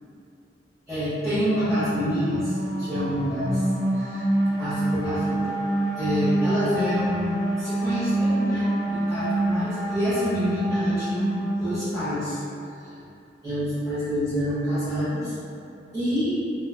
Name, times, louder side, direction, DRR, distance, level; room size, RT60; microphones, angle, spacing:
voice 1, 0.9-3.6 3.9-4.2 4.6-5.5 6.0-12.7 13.4-15.3 15.9-16.4, equal, ahead, -19 dB, 1.0 m, -27 dB
sound 1, 1.7-12.2, right 2 dB, 75° right, 0.8 m, -27 dB
3.0 x 2.3 x 2.3 m, 2.6 s
head